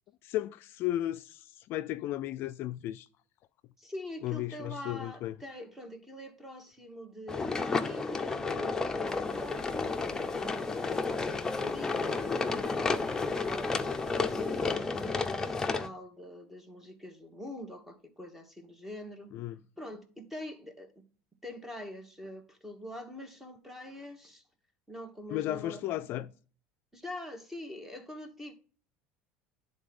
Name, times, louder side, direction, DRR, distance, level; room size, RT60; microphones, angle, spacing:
voice 1, 0.2-3.1 4.2-5.4 19.3-19.6 25.3-26.3, left 14 dB, 55° left, 0.4 m, -34 dB
voice 2, 3.8-10.5 11.6-21.0 21.4-24.4 24.9-25.8 26.9-28.5, left 1 dB, 5° right, 1.4 m, -44 dB
sound 1, 7.3-15.9, left 4 dB, 10° left, 0.7 m, -31 dB
sound 2, 9.2-14.8, right 1 dB, 75° right, 2.0 m, -56 dB
9.8 x 3.9 x 5.2 m
supercardioid pair, 130°, 5 cm